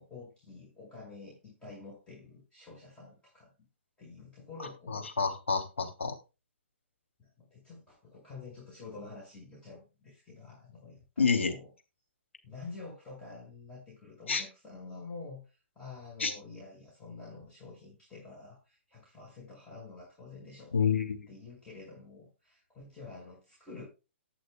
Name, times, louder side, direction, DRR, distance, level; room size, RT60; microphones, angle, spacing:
voice 1, 0.0-3.5 4.0-5.1 7.2-11.7 12.4-20.8 21.3-23.8, left 4 dB, 15° left, -5 dB, 5.6 m, -48 dB
voice 2, 4.9-6.2 11.2-11.5 14.3-14.4 16.2-16.3 20.7-21.3, left 5 dB, 75° left, 4 dB, 3.0 m, -28 dB
19.0 x 6.4 x 2.3 m, 0.29 s
figure-of-eight pair, 125°, 7 cm